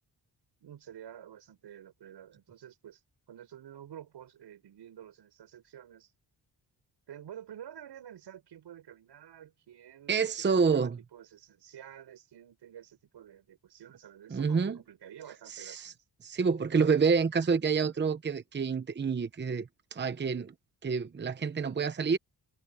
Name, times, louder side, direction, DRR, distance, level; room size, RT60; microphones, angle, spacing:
voice 1, 0.6-3.0 3.3-6.1 7.1-16.0, right 10 dB, 85° right, 7.4 m, -50 dB
voice 2, 10.1-11.0 14.3-14.8 15.5-15.9 16.2-20.5 20.8-22.2, right 5 dB, 25° right, 0.9 m, -28 dB
wide cardioid pair, 130°, 40 cm